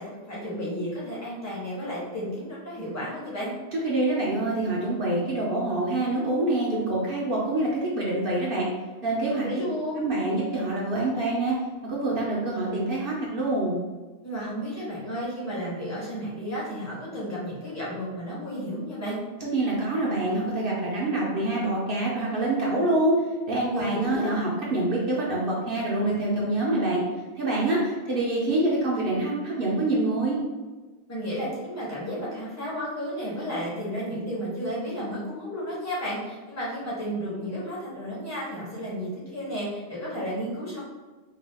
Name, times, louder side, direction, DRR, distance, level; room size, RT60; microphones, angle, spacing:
voice 1, 0.0-3.5 9.4-10.0 14.2-19.2 23.7-24.4 31.1-40.8, equal, 15° left, -7 dB, 0.8 m, -32 dB
voice 2, 3.7-8.7 9.0-9.5 10.0-11.6 11.9-13.8 19.4-23.2 23.5-27.0 27.4-30.4, right 2 dB, 60° right, -5 dB, 0.8 m, -26 dB
2.7 x 2.3 x 3.3 m, 1.3 s
omnidirectional pair, 1.2 m